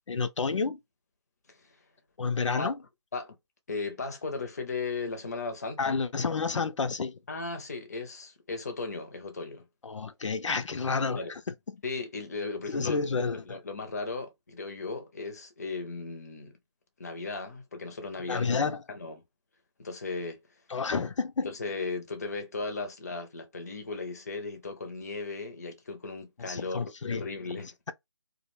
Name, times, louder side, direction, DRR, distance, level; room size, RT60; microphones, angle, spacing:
voice 1, 0.1-0.8 2.2-2.7 5.8-7.2 9.8-11.4 11.7-11.8 12.7-13.6 18.3-18.8 20.7-21.5 26.4-27.3, left 4 dB, 85° left, 0.5 m, -30 dB
voice 2, 3.7-6.0 7.3-9.7 11.1-11.3 11.8-13.0 13.3-16.6 17.0-18.6 18.9-19.2 19.8-20.4 21.4-27.7, left 3 dB, 35° left, 0.5 m, -36 dB
2.3 x 2.1 x 3.0 m
figure-of-eight pair, 170°, 15 cm